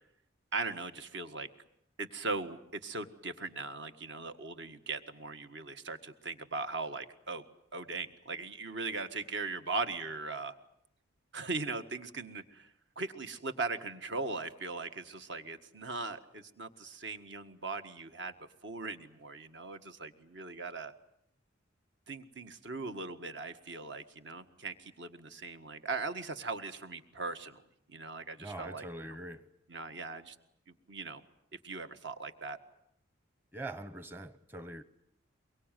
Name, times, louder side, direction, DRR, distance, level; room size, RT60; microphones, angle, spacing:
voice 1, 0.5-1.5 2.0-7.4 7.7-10.6 11.3-12.7 13.0-18.3 18.6-20.9 22.1-27.6 27.9-28.9 29.7-30.4 30.9-31.2 31.6-32.6, right 3 dB, 60° right, 1.6 m, -39 dB
voice 2, 28.4-29.5 33.5-34.8, right 1 dB, 10° right, 1.0 m, -43 dB
23.5 x 23.0 x 9.1 m
head